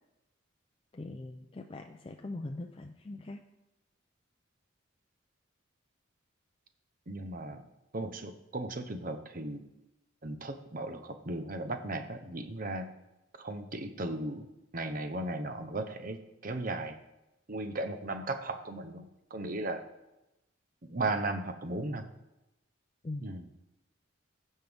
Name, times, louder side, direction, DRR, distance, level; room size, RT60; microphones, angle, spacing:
voice 1, 0.9-3.4 23.0-23.3, left 2 dB, 25° left, 4 dB, 0.4 m, -41 dB
voice 2, 7.1-7.6 7.9-9.6 10.2-12.9 13.4-17.0 17.5-19.8 20.8-22.1 23.2-23.5, right 2 dB, 45° right, 8 dB, 0.8 m, -36 dB
15.5 x 5.5 x 3.5 m, 0.96 s
head